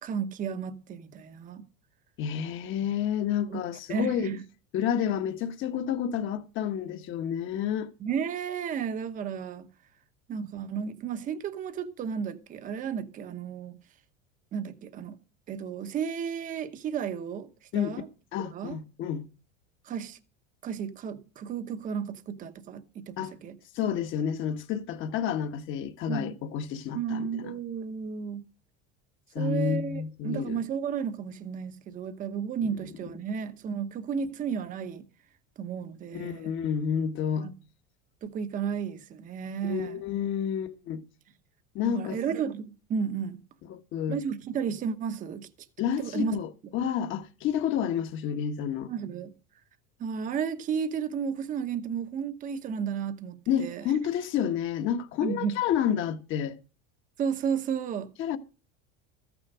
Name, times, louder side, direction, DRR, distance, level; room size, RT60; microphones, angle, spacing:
voice 1, 0.0-1.6 3.5-3.6 3.9-4.4 8.0-9.7 10.3-13.8 14.5-15.2 15.5-17.5 17.7-18.1 18.4-18.8 19.8-20.2 20.6-23.5 26.1-26.4 26.9-28.4 29.4-35.0 35.6-36.5 37.4-37.5 38.2-40.0 41.8-43.4 44.1-45.5 46.0-46.4 48.8-49.3 50.0-53.8 55.2-55.6 57.2-58.1, right 7 dB, 25° right, 1.0 m, -33 dB
voice 2, 2.2-4.3 4.7-7.9 17.7-17.9 18.3-19.3 23.2-23.3 23.7-27.5 29.3-30.6 36.1-37.5 39.6-41.0 41.7-42.2 43.7-44.2 45.8-48.9 53.5-56.6 58.2-58.4, left 8 dB, 40° left, 1.4 m, -30 dB
14.5 x 9.9 x 4.9 m
cardioid pair, 170°, 31 cm